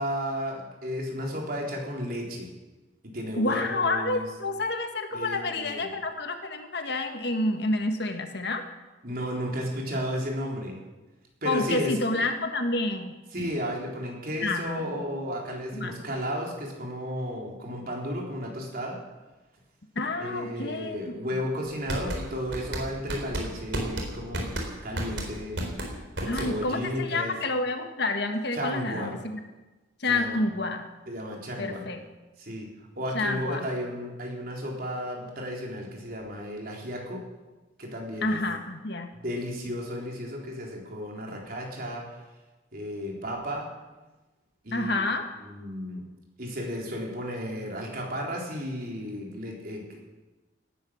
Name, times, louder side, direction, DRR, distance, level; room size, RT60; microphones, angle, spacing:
voice 1, 0.0-2.5 3.0-4.3 5.1-5.9 9.0-10.8 11.4-11.9 13.3-19.0 20.2-24.5 24.8-25.6 26.2-27.3 28.5-29.1 30.1-30.4 31.1-31.8 32.4-32.7 33.0-37.2 37.8-38.4 39.1-42.2 42.7-43.7 44.6-45.1 45.4-46.0 46.4-50.0, equal, 50° right, -1 dB, 3.9 m, -33 dB
voice 2, 3.4-8.6 11.5-13.2 14.4-14.9 15.7-15.9 20.0-21.4 26.3-29.2 30.0-30.8 31.6-32.0 33.1-33.7 38.2-39.1 44.7-45.3, left 2 dB, 60° left, 6 dB, 1.6 m, -29 dB
sound 1, 21.7-26.8, right 1 dB, 75° right, 3.8 m, -32 dB
18.0 x 11.0 x 6.4 m, 1.1 s
head